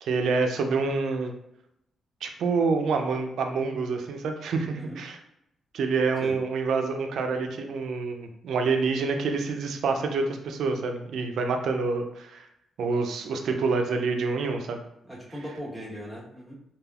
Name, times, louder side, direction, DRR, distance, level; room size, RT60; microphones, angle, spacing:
voice 1, 0.0-1.3 2.2-5.2 5.7-12.5 12.8-14.8, right 4 dB, 75° right, 5 dB, 0.4 m, -27 dB
voice 2, 15.1-16.5, equal, 5° left, -6 dB, 1.0 m, -39 dB
3.3 x 2.3 x 2.3 m, 0.79 s
cardioid pair, 115°, 0 cm